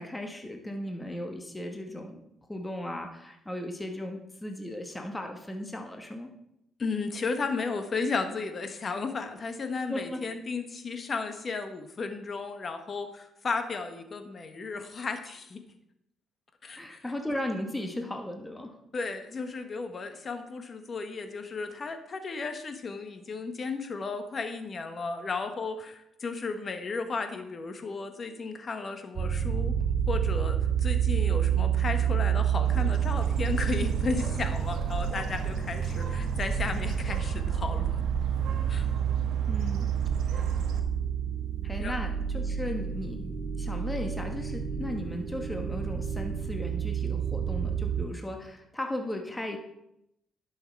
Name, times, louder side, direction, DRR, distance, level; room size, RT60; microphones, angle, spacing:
voice 1, 0.0-2.2 2.5-6.3 9.9-10.2 16.7-18.8 39.5-39.9 40.3-40.6 41.6-49.6, left 1 dB, 10° left, 3 dB, 1.3 m, -36 dB
voice 2, 6.8-15.6 16.6-17.0 18.9-29.8 30.1-38.0 38.7-38.9 41.8-41.9, left 4 dB, 40° left, 7 dB, 1.3 m, -34 dB
sound 1, 29.2-48.1, right 8 dB, 60° right, 2.1 m, -29 dB
Bird, 32.6-40.8, right 6 dB, 85° right, 1.2 m, -36 dB
11.0 x 6.4 x 4.6 m, 0.81 s
cardioid pair, 90°, 0 cm